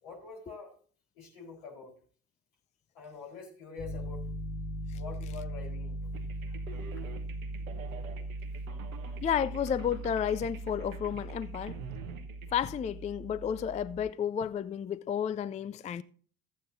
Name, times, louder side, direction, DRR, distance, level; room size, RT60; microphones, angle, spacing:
voice 1, 0.0-0.7 1.1-1.9 2.9-4.2 4.9-6.1, left 4 dB, 75° left, 4.1 m, -46 dB
Piano, 3.8-14.0, right 1 dB, 40° left, 6.0 m, -39 dB
sound 1, 6.1-12.5, right 7 dB, 90° right, 1.0 m, -48 dB
voice 2, 9.2-11.7 12.5-16.0, left 8 dB, 20° left, 0.4 m, -32 dB
14.0 x 8.6 x 2.7 m
hypercardioid pair, 60°, 40 cm